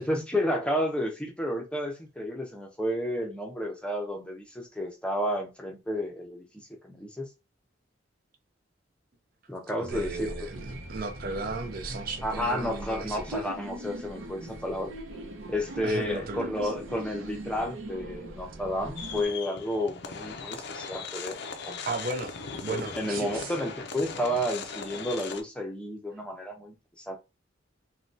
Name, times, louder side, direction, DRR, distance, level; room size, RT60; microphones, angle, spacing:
voice 1, 0.0-7.3 9.5-10.5 12.2-14.9 15.5-21.4 21.7-22.1 22.5-26.7 27.1-27.2, equal, 5° left, 0.6 m, -31 dB
voice 2, 9.8-13.5 15.8-16.7 21.9-23.5, right 3 dB, 50° right, 0.5 m, -36 dB
sound 1, 9.9-19.3, right 1 dB, 80° right, 0.8 m, -41 dB
sound 2, 19.0-25.4, left 5 dB, 60° left, 0.4 m, -39 dB
3.2 x 2.2 x 2.6 m
head